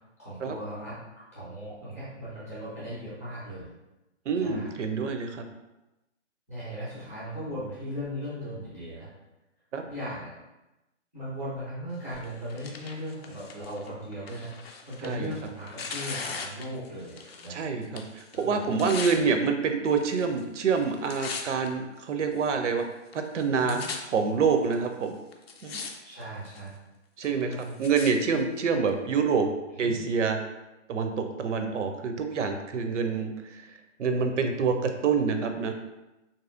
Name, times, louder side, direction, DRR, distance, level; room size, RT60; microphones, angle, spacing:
voice 1, 0.2-1.0 1.3-3.7 4.4-4.7 6.5-9.1 9.8-10.3 11.1-17.6 18.3-18.7 23.5-23.8 26.0-26.7 27.4-27.7 29.8-30.0, equal, 15° left, -11 dB, 0.6 m, -38 dB
voice 2, 4.3-5.5 9.7-9.8 15.0-15.3 17.5-22.9 23.1-23.8 24.1-25.1 25.6-25.8 27.2-27.5 27.8-29.5 29.8-30.4 30.9-33.3 34.0-35.7, right 5 dB, 75° right, 6 dB, 0.6 m, -26 dB
Tearing, 12.1-17.6 17.8-19.2 19.9-20.4 20.7-21.7 22.3-22.4 23.1-23.2 23.4-24.0 24.7-24.8 25.3-25.9 26.2-26.7 27.2-28.1 28.9-29.0, left 4 dB, 55° left, 0.5 m, -39 dB
3.7 x 2.7 x 2.4 m, 0.99 s
hypercardioid pair, 170°, 37 cm